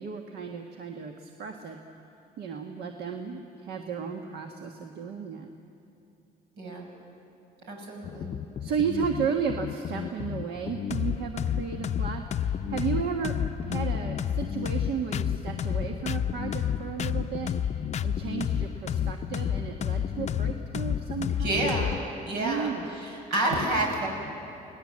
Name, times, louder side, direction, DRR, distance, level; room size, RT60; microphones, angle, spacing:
voice 1, 0.0-1.8 2.4-5.5 8.6-13.3 13.6-21.7 22.3-22.9, right 6 dB, 75° right, 3 dB, 1.5 m, -34 dB
voice 2, 7.7-8.3 21.4-22.0 22.3-24.1, right 1 dB, 90° right, 0 dB, 6.2 m, -29 dB
sound 1, 8.0-22.0, left 9 dB, 40° left, 0.6 m, -30 dB
28.5 x 19.0 x 7.6 m, 2.7 s
cardioid pair, 110°, 17 cm